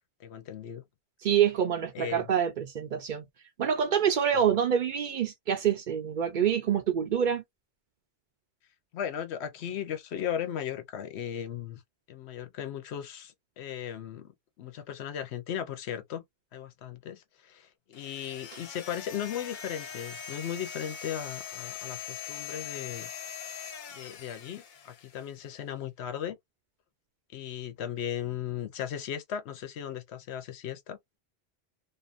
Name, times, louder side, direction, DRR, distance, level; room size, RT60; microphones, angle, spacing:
voice 1, 0.2-0.8 1.9-2.3 4.3-4.4 8.9-11.8 12.1-16.2 16.5-23.1 23.9-26.4 27.3-31.0, left 9 dB, 85° left, 0.9 m, -37 dB
voice 2, 1.2-3.2 3.6-7.4, right 8 dB, 60° right, 0.6 m, -26 dB
sound 1, 17.9-25.3, left 7 dB, 55° left, 0.6 m, -42 dB
2.6 x 2.3 x 2.4 m
omnidirectional pair, 1.1 m